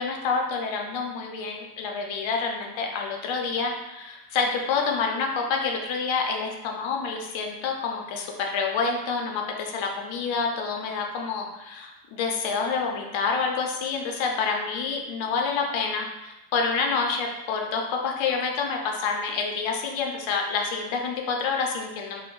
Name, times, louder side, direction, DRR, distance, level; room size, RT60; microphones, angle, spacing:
voice 1, 0.0-22.2, left 5 dB, 70° left, 2 dB, 0.6 m, -28 dB
3.4 x 2.1 x 3.1 m, 1.0 s
cardioid pair, 110°, 49 cm